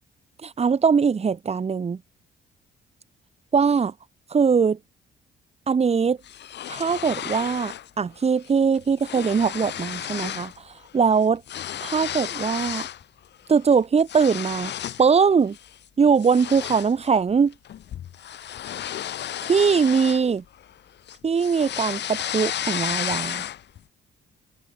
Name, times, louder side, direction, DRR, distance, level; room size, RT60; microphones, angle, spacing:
voice 1, 0.4-2.0 3.5-3.9 4.3-4.8 5.7-6.2 6.7-10.5 10.9-11.4 11.8-12.9 13.5-14.7 15.0-15.6 16.0-17.5 19.5-20.4 21.2-23.4, right 6 dB, 30° right, 1.1 m, -21 dB
sound 1, 6.2-7.9 8.2-8.5 8.7-10.6 10.9-13.0 13.5-15.1 15.5-15.8 16.2-20.7 21.1-23.8, left 11 dB, 60° left, 1.0 m, -33 dB
cardioid pair, 90°, 20 cm